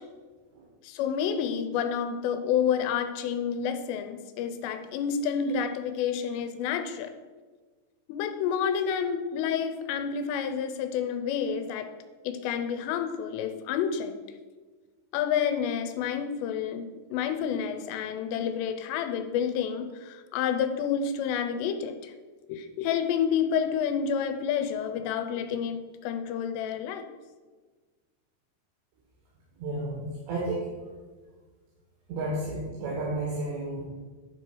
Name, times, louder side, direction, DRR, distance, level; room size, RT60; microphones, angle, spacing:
voice 1, 0.8-7.1 8.1-12.0 12.2-14.2 15.1-22.1 22.5-27.1, left 7 dB, 90° left, 8 dB, 2.9 m, -29 dB
voice 2, 29.6-30.7 32.1-33.8, right 2 dB, 85° right, -5 dB, 4.1 m, -32 dB
9.9 x 4.5 x 6.1 m, 1.4 s
omnidirectional pair, 4.9 m